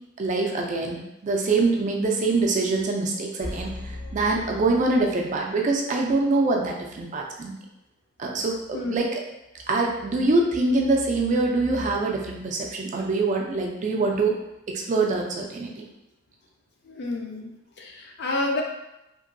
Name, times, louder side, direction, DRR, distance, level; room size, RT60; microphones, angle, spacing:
voice 1, 0.2-3.8 4.1-7.5 8.2-9.1 9.7-14.3 14.7-15.9, right 3 dB, 35° right, 0 dB, 0.3 m, -24 dB
sound 1, 3.4-5.6 5.9-6.0, left 1 dB, 80° left, 1.2 m, -38 dB
voice 2, 16.8-17.5 17.8-18.6, left 2 dB, 50° left, 1 dB, 0.4 m, -29 dB
2.9 x 2.6 x 2.5 m, 0.91 s
head